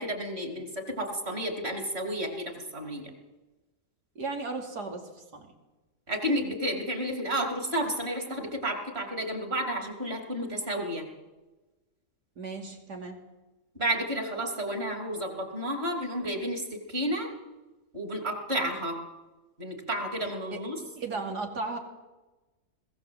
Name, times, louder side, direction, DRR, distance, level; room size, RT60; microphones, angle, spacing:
voice 1, 0.0-3.1 6.1-11.1 13.8-17.3 17.9-19.0 19.6-20.8, equal, 40° right, 3 dB, 3.6 m, -31 dB
voice 2, 4.1-5.5 12.4-13.2 20.5-20.6 21.0-21.8, right 3 dB, 85° right, 2 dB, 3.5 m, -35 dB
21.0 x 16.0 x 7.9 m, 1.1 s
omnidirectional pair, 1.7 m